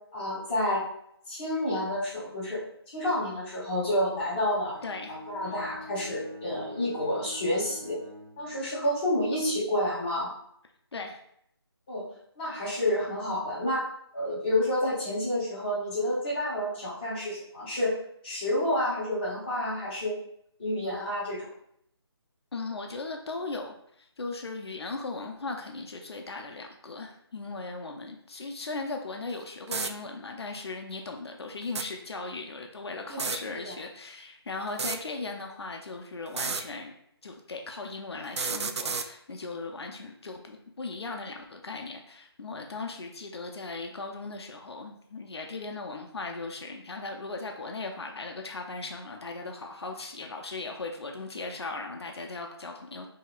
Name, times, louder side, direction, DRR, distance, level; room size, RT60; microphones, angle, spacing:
voice 1, 0.1-0.8 1.3-2.6 2.9-4.8 5.3-8.0 8.4-10.3 11.9-12.1 12.4-13.8 14.1-17.9 18.2-20.1 20.6-21.5 33.1-33.2 33.6-33.7, left 1 dB, 20° left, -10 dB, 1.6 m, -29 dB
Bowed string instrument, 4.7-9.0, left 1 dB, 25° right, 0.8 m, -46 dB
voice 2, 4.8-5.2 10.9-11.2 22.5-36.9 37.2-53.1, left 3 dB, 70° left, 3 dB, 0.6 m, -38 dB
sound 1, 29.3-29.4 29.7-29.9 31.6-31.9 33.1-33.4 34.7-35.0 36.3-36.6 38.2-39.1, right 5 dB, 85° right, 0.4 m, -31 dB
5.7 x 2.8 x 2.4 m, 0.71 s
hypercardioid pair, 170°, 14 cm